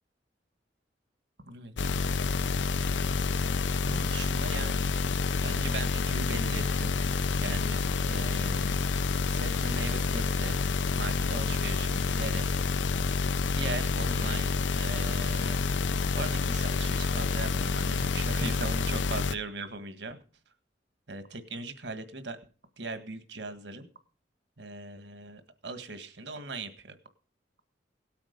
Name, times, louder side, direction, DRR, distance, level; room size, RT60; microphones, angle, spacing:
voice 1, 1.4-2.2 3.8-4.8 5.4-6.9 7.4-8.8 9.3-10.6 10.9-12.5 13.5-15.6 16.1-20.2 21.1-22.4 22.8-23.9 24.6-26.9, right 3 dB, 70° right, 10 dB, 1.7 m, -39 dB
sound 1, 1.8-19.3, left 4 dB, 90° left, 0.6 m, -28 dB
18.0 x 8.8 x 5.3 m, 0.38 s
head